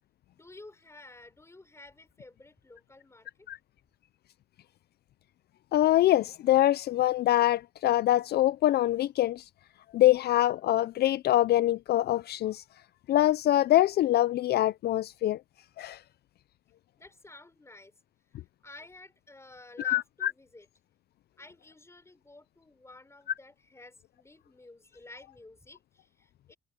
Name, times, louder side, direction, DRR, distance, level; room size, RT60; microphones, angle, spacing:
voice 1, 0.3-3.5 17.0-18.0 18.6-20.7 21.4-26.5, left 2 dB, 15° left, 4.9 m, -52 dB
voice 2, 5.7-9.4 9.9-12.6 13.1-15.4 15.8-16.0 19.8-20.3, left 14 dB, 65° left, 0.4 m, -24 dB
cardioid pair, 100°, 18 cm